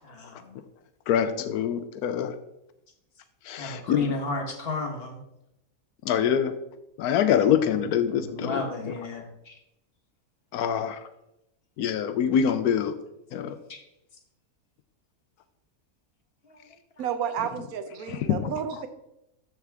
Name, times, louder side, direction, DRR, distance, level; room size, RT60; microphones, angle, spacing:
voice 1, 0.0-0.6 3.6-5.2 7.2-7.3 7.6-7.8 8.1-9.6 13.7-13.8 16.4-17.0, left 3 dB, 40° left, 2 dB, 1.5 m, -34 dB
voice 2, 1.1-2.3 3.5-4.1 6.0-6.5 7.0-8.6 10.5-11.0 11.8-12.9 13.3-13.6 18.1-18.5, left 8 dB, 90° left, 10 dB, 1.1 m, -25 dB
voice 3, 17.0-18.9, right 8 dB, 75° right, 10 dB, 1.2 m, -31 dB
12.5 x 4.7 x 3.5 m, 0.84 s
omnidirectional pair, 1.6 m